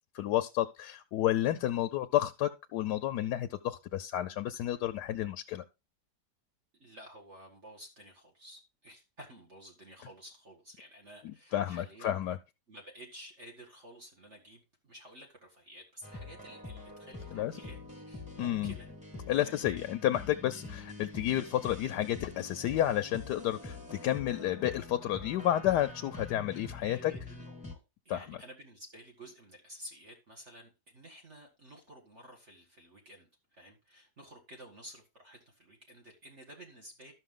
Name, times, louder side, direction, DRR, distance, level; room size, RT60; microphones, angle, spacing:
voice 1, 0.1-5.6 11.2-12.4 17.3-17.6 18.4-18.8 19.3-27.1 28.1-28.4, left 12 dB, 75° left, 1.2 m, -31 dB
voice 2, 6.8-12.2 12.7-18.9 19.5-19.6 26.5-27.8 28.1-37.1, equal, 40° right, 2.0 m, -52 dB
sound 1, 16.0-27.8, left 3 dB, 5° right, 1.6 m, -45 dB
12.5 x 6.3 x 3.7 m
omnidirectional pair, 1.8 m